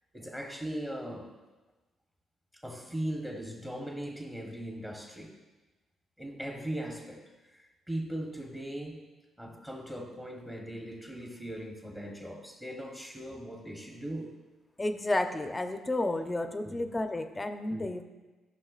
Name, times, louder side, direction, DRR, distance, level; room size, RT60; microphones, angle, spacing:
voice 1, 0.1-1.3 2.5-5.3 6.2-9.0 9.4-14.4 16.6-16.8 17.7-17.9, right 1 dB, 10° right, 1 dB, 1.1 m, -39 dB
voice 2, 14.8-18.0, left 2 dB, 15° left, 7 dB, 0.6 m, -31 dB
13.0 x 5.8 x 2.4 m, 1.2 s
cardioid pair, 90°, 0 cm